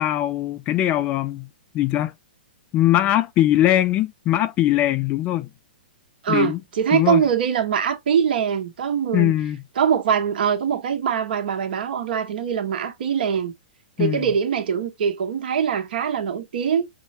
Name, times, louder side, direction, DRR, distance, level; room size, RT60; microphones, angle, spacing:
voice 1, 0.0-1.5 1.7-2.1 2.7-5.5 6.3-6.6 6.9-7.2 9.1-9.6 14.0-14.3, left 13 dB, 25° left, 0.3 m, -21 dB
voice 2, 6.2-9.3 9.8-13.5 14.0-16.9, right 7 dB, 60° right, 1.2 m, -23 dB
5.4 x 2.2 x 2.8 m
hypercardioid pair, 145°, 6 cm